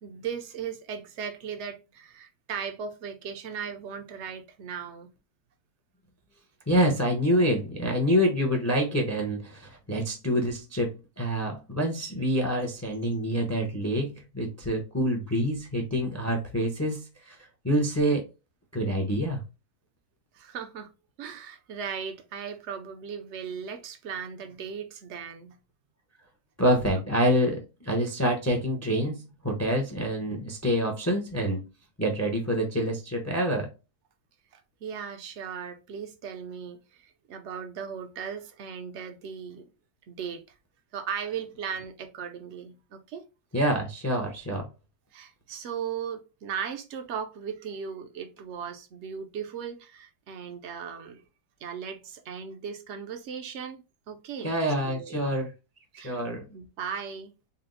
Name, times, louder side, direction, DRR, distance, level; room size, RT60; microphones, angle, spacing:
voice 1, 0.0-5.1 20.3-20.9 21.2-25.6 34.5-39.7 40.1-40.4 40.9-43.3 45.1-51.2 51.6-54.5 54.8-55.4 55.9-56.2 56.5-57.3, right 7 dB, 65° right, 0.7 m, -37 dB
voice 2, 6.7-17.4 17.6-18.2 18.7-19.4 26.6-31.7 32.0-33.7 43.5-44.7 54.4-55.5 56.0-56.4, equal, 25° left, 0.3 m, -26 dB
4.2 x 2.0 x 3.8 m
omnidirectional pair, 1.8 m